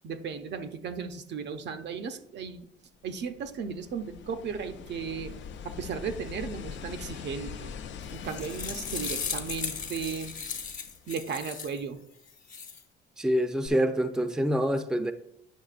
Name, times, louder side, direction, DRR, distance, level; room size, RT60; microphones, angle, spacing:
voice 1, 0.0-2.7 3.0-5.3 5.6-7.7 8.1-10.3 11.1-12.0, right 6 dB, 60° right, 0.6 m, -35 dB
sound 1, 3.0-11.5 13.7-13.8, left 7 dB, 70° left, 0.6 m, -43 dB
sound 2, 8.0-11.8 12.3-12.8, left 6 dB, 40° left, 1.1 m, -37 dB
voice 2, 13.2-15.1, equal, 5° right, 0.5 m, -26 dB
9.2 x 6.1 x 2.5 m
cardioid pair, 90°, 20 cm